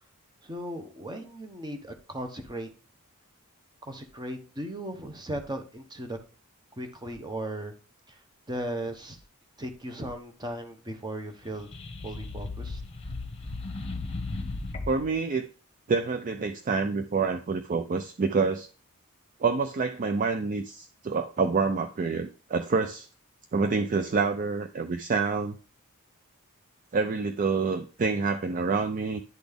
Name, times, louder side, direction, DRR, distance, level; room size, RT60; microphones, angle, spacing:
voice 1, 0.4-2.7 3.9-6.2 6.8-7.7 8.5-9.2 9.6-11.7 12.0-12.8, right 1 dB, 20° right, 5 dB, 0.9 m, -37 dB
sound 1, 11.4-15.1, left 3 dB, 25° left, 1.0 m, -36 dB
voice 2, 14.9-15.5 15.9-18.7 19.4-23.1 23.5-25.6 26.9-29.2, right 4 dB, 35° right, 8 dB, 0.4 m, -27 dB
10.5 x 4.1 x 3.4 m, 0.38 s
head